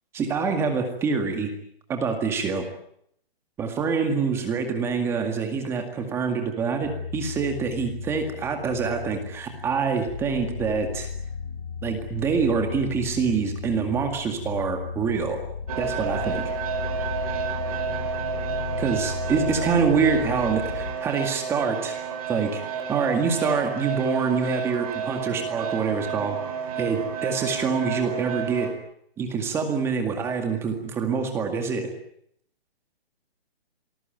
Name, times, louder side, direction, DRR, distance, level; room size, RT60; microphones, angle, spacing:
voice 1, 0.1-1.5 1.9-2.6 3.6-11.1 11.8-15.4 15.8-16.5 18.8-22.0 22.3-26.4 26.8-28.7 29.2-31.9, right 5 dB, 10° right, 5 dB, 2.0 m, -26 dB
sound 1, 6.8-20.9, left 6 dB, 45° left, 7.3 m, -35 dB
sound 2, 15.7-28.7, right 7 dB, 35° right, 4.8 m, -31 dB
27.0 x 20.5 x 9.1 m, 0.71 s
hypercardioid pair, 170°, 31 cm